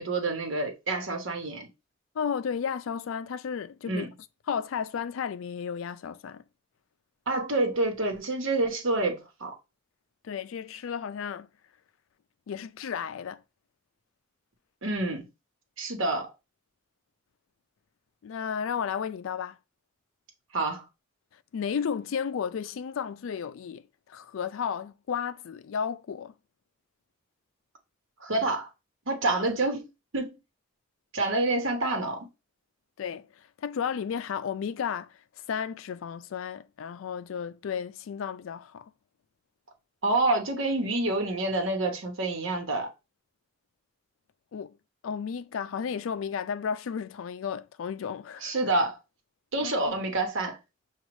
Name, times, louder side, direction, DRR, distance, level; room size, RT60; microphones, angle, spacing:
voice 1, 0.0-1.7 3.9-4.1 7.3-9.5 14.8-15.3 15.8-16.3 20.5-20.9 28.2-28.7 29.1-29.9 30.1-30.4 31.1-32.3 40.0-42.9 48.4-49.0 49.5-50.6, right 2 dB, 75° right, 1.1 m, -28 dB
voice 2, 2.2-4.1 4.5-6.4 10.2-11.5 12.5-13.4 18.2-19.6 21.5-23.8 24.1-26.3 33.0-35.1 35.5-38.9 44.5-44.7 45.0-48.7 49.6-49.9, left 7 dB, 80° left, 0.3 m, -33 dB
6.1 x 2.4 x 3.1 m
head